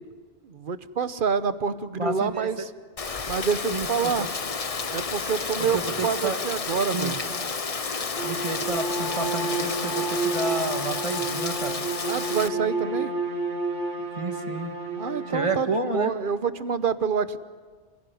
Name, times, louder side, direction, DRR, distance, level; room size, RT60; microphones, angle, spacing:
voice 1, 0.4-2.7 3.3-4.3 4.9-7.2 12.0-13.1 15.0-17.4, right 6 dB, 50° right, 13 dB, 1.1 m, -27 dB
voice 2, 2.0-2.7 3.7-4.3 5.6-6.4 6.9-7.1 8.2-11.8 14.2-14.7 15.3-16.1, right 3 dB, 25° right, 6 dB, 1.8 m, -30 dB
Rain, 3.0-12.5, left 4 dB, 35° left, 0.9 m, -31 dB
Bowed string instrument, 8.1-15.7, right 3 dB, 80° right, 2.1 m, -30 dB
27.5 x 16.5 x 9.4 m, 1.6 s
omnidirectional pair, 1.2 m